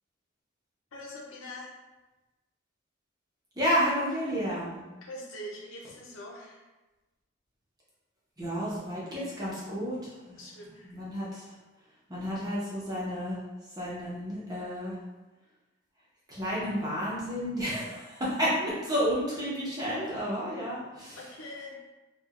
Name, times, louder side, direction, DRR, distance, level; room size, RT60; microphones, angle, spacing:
voice 1, 0.9-1.8 5.0-6.6 10.4-11.0 21.2-21.8, left 1 dB, 90° left, -2 dB, 0.8 m, -43 dB
voice 2, 3.6-4.8 8.4-10.4 10.8-11.4 12.1-13.4 13.8-14.9 16.3-21.2, equal, 20° right, -7 dB, 0.9 m, -31 dB
4.5 x 2.4 x 2.5 m, 1.1 s
head